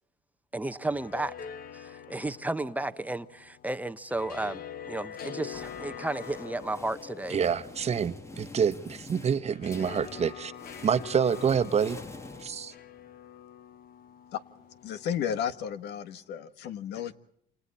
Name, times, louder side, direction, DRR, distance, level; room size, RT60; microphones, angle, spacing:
voice 1, 0.5-1.3 1.7-7.4, right 2 dB, 10° right, 0.9 m, -33 dB
sound 1, 0.7-15.8, left 8 dB, 60° left, 1.1 m, -45 dB
sound 2, 5.1-13.1, left 2 dB, 15° left, 1.4 m, -48 dB
voice 2, 7.3-10.5 10.8-12.0 12.4-12.7, right 7 dB, 40° right, 1.2 m, -27 dB
voice 3, 14.8-17.1, left 9 dB, 80° left, 1.5 m, -33 dB
28.5 x 28.0 x 4.2 m
cardioid pair, 110°, 17 cm